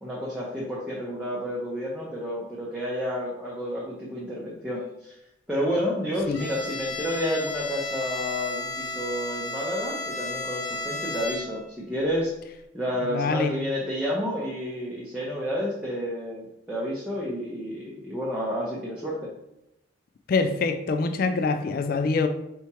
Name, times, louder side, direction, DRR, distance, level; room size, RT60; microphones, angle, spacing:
voice 1, 0.0-5.2 5.5-12.3 12.7-19.3, equal, 5° right, 0.7 m, -30 dB
Bowed string instrument, 6.3-11.8, left 3 dB, 75° left, 1.1 m, -34 dB
voice 2, 13.1-13.5 20.3-22.3, left 4 dB, 50° left, 0.3 m, -24 dB
4.4 x 3.4 x 3.0 m
head